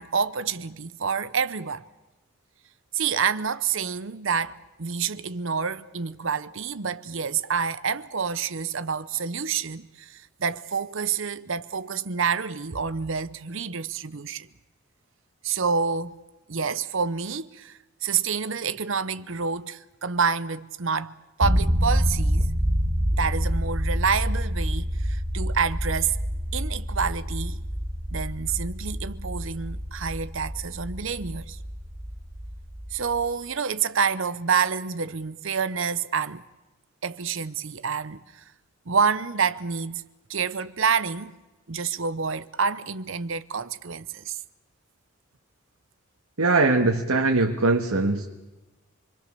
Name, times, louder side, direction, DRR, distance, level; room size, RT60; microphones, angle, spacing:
voice 1, 0.0-1.8 2.9-14.5 15.4-16.2 16.5-22.5 23.1-26.2 26.5-27.6 28.1-31.6 32.9-36.4 37.0-38.4 38.9-40.0 40.3-41.3 41.7-44.4, right 6 dB, 65° right, 0.8 m, -28 dB
sound 1, 21.4-33.3, equal, 30° right, 2.4 m, -27 dB
voice 2, 46.4-48.3, right 3 dB, 90° right, 1.7 m, -21 dB
27.5 x 22.5 x 6.9 m
head